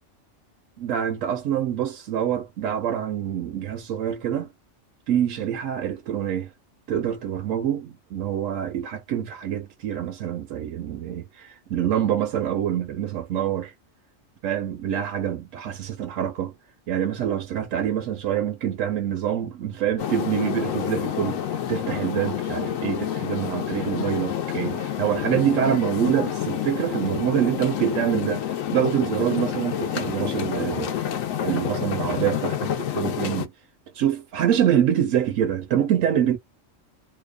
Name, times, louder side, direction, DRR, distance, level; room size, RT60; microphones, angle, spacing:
voice 1, 0.8-4.5 5.1-6.5 6.9-13.7 14.4-16.5 16.9-21.4 21.7-30.9 31.4-33.5 33.9-36.4, right 10 dB, 85° right, 1.0 m, -25 dB
sound 1, 20.0-33.5, left 10 dB, 85° left, 1.0 m, -28 dB
2.8 x 2.1 x 2.2 m
omnidirectional pair, 1.3 m